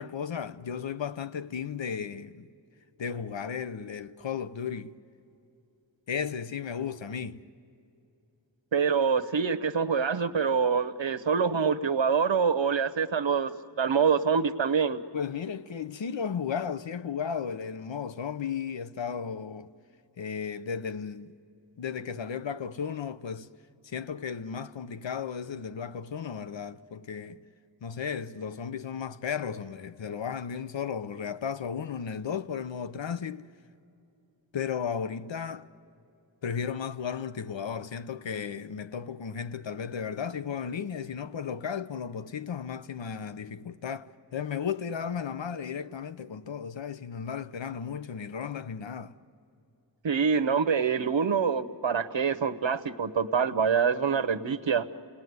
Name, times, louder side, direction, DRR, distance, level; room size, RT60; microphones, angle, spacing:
voice 1, 0.0-2.5 3.0-5.0 6.1-7.4 15.1-19.7 20.2-21.3 21.8-23.5 23.8-27.4 27.8-33.5 34.5-35.7 36.4-49.2, left 7 dB, 75° left, 0.8 m, -34 dB
voice 2, 8.7-13.5 13.8-15.0 50.0-54.9, right 6 dB, 75° right, 1.0 m, -25 dB
29.0 x 19.0 x 9.4 m
wide cardioid pair, 60°, 45 cm